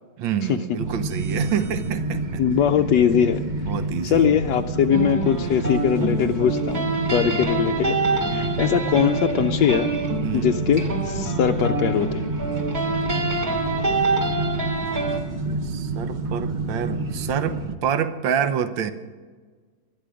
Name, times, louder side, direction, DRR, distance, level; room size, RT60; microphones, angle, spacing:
voice 1, 0.2-2.4 3.7-4.4 7.3-7.4 8.3-8.6 10.2-10.5 15.5-18.9, right 8 dB, 65° right, 10 dB, 1.6 m, -27 dB
sound 1, 0.8-17.8, right 3 dB, 45° right, 0.6 m, -28 dB
voice 2, 2.4-3.4 4.0-8.0 8.3-9.9 10.3-12.3, left 9 dB, 70° left, 4 dB, 1.1 m, -21 dB
sound 2, 4.9-15.2, right 2 dB, 30° right, 2.9 m, -26 dB
21.0 x 13.0 x 5.1 m, 1.5 s
omnidirectional pair, 2.3 m